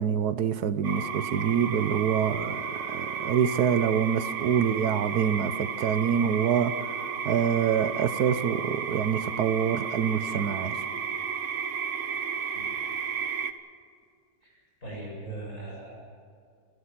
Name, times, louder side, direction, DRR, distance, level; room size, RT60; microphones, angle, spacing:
voice 1, 0.0-6.9 7.2-10.8, right 8 dB, 70° right, 1.3 m, -26 dB
sound 1, 0.8-13.5, right 6 dB, 50° right, 1.3 m, -33 dB
voice 2, 14.8-16.0, right 2 dB, 50° left, 8.4 m, -39 dB
27.0 x 16.0 x 7.5 m
omnidirectional pair, 1.9 m